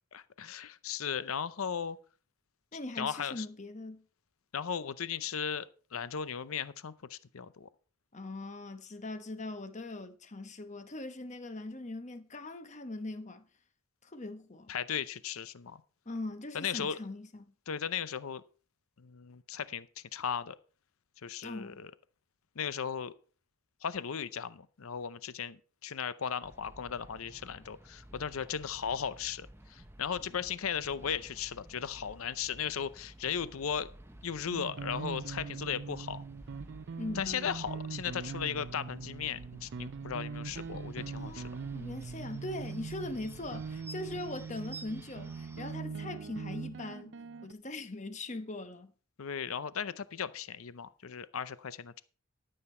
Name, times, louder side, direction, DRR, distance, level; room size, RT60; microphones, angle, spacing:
voice 1, 0.1-2.0 3.0-3.4 4.5-5.7 5.9-7.7 14.7-15.8 16.5-17.0 17.7-18.4 19.0-19.9 20.1-20.6 21.2-21.9 22.6-23.1 23.8-33.9 34.2-36.2 37.2-41.4 49.2-52.0, left 7 dB, 80° left, 0.6 m, -36 dB
voice 2, 2.7-4.0 8.1-13.4 14.0-14.7 16.1-17.5 21.4-21.8 37.0-37.3 41.1-47.2 47.4-48.9, left 2 dB, 35° left, 1.0 m, -41 dB
sound 1, 26.4-45.8, right 1 dB, 10° right, 0.8 m, -53 dB
sound 2, 34.5-47.5, right 5 dB, 55° right, 0.4 m, -42 dB
13.5 x 7.8 x 4.4 m
head